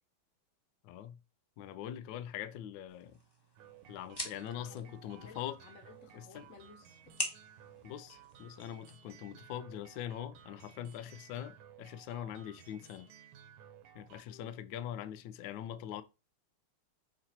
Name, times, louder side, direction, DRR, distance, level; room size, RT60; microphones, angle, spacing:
voice 1, 0.8-1.2 1.6-3.2 3.9-5.6 6.2-6.5 7.8-13.1 13.9-16.0, left 10 dB, 75° left, 1.2 m, -43 dB
sound 1, 2.9-8.9, equal, 15° left, 0.9 m, -45 dB
sound 2, 3.6-14.2, right 9 dB, 75° right, 1.5 m, -57 dB
voice 2, 4.7-7.2 14.3-14.6, left 5 dB, 45° left, 1.4 m, -57 dB
6.0 x 4.1 x 4.3 m
omnidirectional pair, 2.3 m